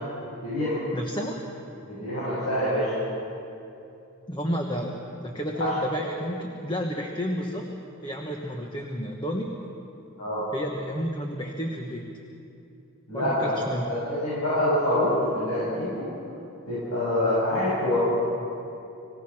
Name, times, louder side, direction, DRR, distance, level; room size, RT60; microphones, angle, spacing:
voice 1, 0.4-0.8 1.8-2.9 5.5-5.7 10.2-10.4 13.1-13.5 13.8-16.1 16.7-18.0, left 1 dB, 90° left, -10 dB, 6.9 m, -26 dB
voice 2, 0.9-1.4 4.3-7.7 8.0-9.5 10.5-12.1 13.1-13.9, equal, 20° left, 2 dB, 1.2 m, -31 dB
26.5 x 16.5 x 6.1 m, 2.8 s
head